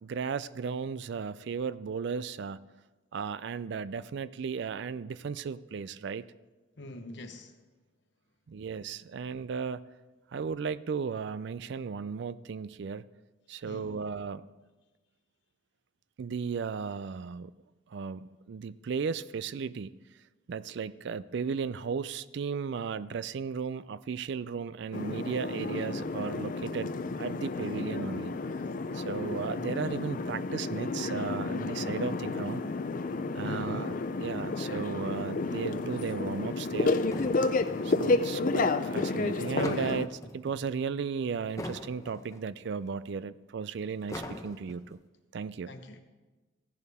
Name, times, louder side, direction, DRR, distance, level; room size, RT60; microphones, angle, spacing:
voice 1, 0.0-2.6 3.1-6.3 8.5-9.8 10.3-13.1 13.5-14.4 16.2-17.5 17.9-19.9 20.5-28.3 28.9-32.6 33.3-36.9 37.8-45.0 45.3-45.7, right 5 dB, 60° right, 17 dB, 0.4 m, -35 dB
voice 2, 6.8-7.5 13.6-14.0 33.4-33.9 45.7-46.0, left 2 dB, 60° left, 7 dB, 1.1 m, -44 dB
sound 1, 24.9-40.1, left 3 dB, 45° left, 0.5 m, -31 dB
sound 2, 37.0-38.2 39.2-40.6 41.4-42.4 42.6-42.7 43.9-44.9, left 1 dB, 15° left, 0.9 m, -41 dB
15.0 x 11.0 x 3.6 m, 1.2 s
head